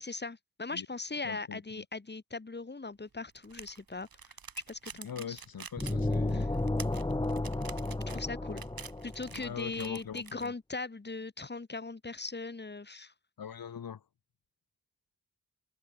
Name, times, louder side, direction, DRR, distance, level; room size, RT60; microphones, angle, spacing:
voice 1, 0.0-4.3 4.7-5.4 6.3-6.5 8.1-8.6 9.0-13.1, left 3 dB, 30° left, 2.8 m, -39 dB
voice 2, 1.2-1.8 5.0-6.5 9.3-10.5 13.4-14.0, left 7 dB, 85° left, 1.7 m, -42 dB
sound 1, 3.4-10.5, right 6 dB, 85° right, 5.9 m, -47 dB
sound 2, 5.8-9.6, left 2 dB, 15° left, 1.2 m, -32 dB
wide cardioid pair, 110°, 35 cm